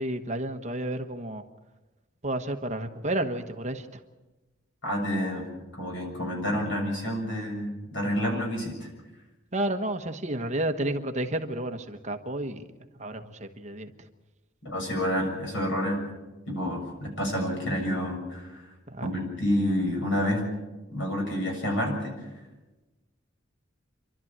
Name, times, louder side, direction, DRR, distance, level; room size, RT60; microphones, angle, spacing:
voice 1, 0.0-1.4 2.2-4.0 9.5-12.6 13.0-13.9 18.9-19.1, right 1 dB, 35° right, 6 dB, 1.2 m, -31 dB
voice 2, 4.8-5.5 5.8-8.9 14.6-16.0 16.5-18.7 19.0-20.5 20.9-22.3, equal, 70° left, 2 dB, 7.0 m, -29 dB
28.5 x 12.5 x 8.8 m, 1.1 s
head